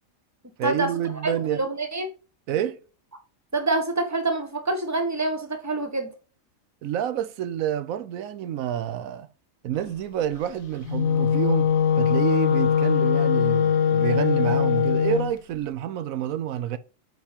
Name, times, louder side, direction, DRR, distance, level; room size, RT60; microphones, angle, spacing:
voice 1, 0.6-1.6 2.5-2.8 6.8-9.3 9.6-11.7 12.0-16.8, right 11 dB, 80° right, 1.0 m, -28 dB
voice 2, 1.2-2.1 3.5-6.1, right 2 dB, 10° right, 1.3 m, -26 dB
Wind instrument woodwind instrument, 10.8-15.3, left 8 dB, 80° left, 1.2 m, -21 dB
8.9 x 5.4 x 2.8 m
omnidirectional pair, 1.4 m